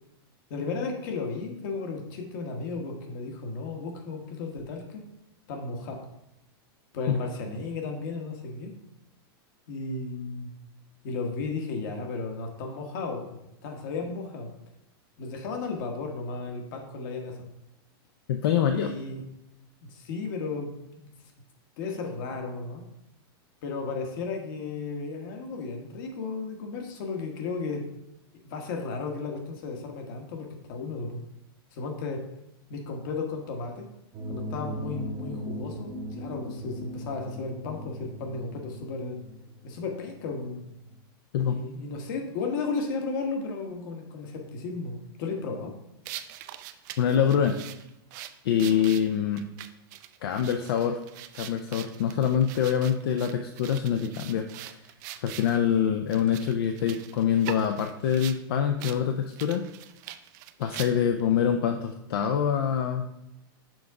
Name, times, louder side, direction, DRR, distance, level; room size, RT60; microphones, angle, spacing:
voice 1, 0.5-5.1 5.5-6.0 6.9-8.8 9.7-10.5 11.0-13.2 13.6-14.5 15.2-17.5 18.7-19.2 19.9-20.7 21.0-21.1 21.8-22.8 23.6-27.9 28.4-31.2 31.7-32.3 32.7-33.9 34.3-39.2 39.6-40.6 41.4-45.7, left 4 dB, 55° left, 3 dB, 1.3 m, -34 dB
voice 2, 18.3-18.9 41.3-41.6 47.0-47.6 48.4-49.5 50.2-51.0 51.4-54.5 55.2-59.6 60.6-63.1, left 8 dB, 75° left, 6 dB, 0.5 m, -25 dB
sound 1, 34.1-40.9, left 1 dB, 30° right, 0.8 m, -39 dB
sound 2, 46.0-55.6 56.1-58.4 58.8-59.0 59.3-61.2, right 13 dB, 50° right, 0.4 m, -43 dB
6.2 x 3.8 x 4.6 m, 0.89 s
supercardioid pair, 150°, 13 cm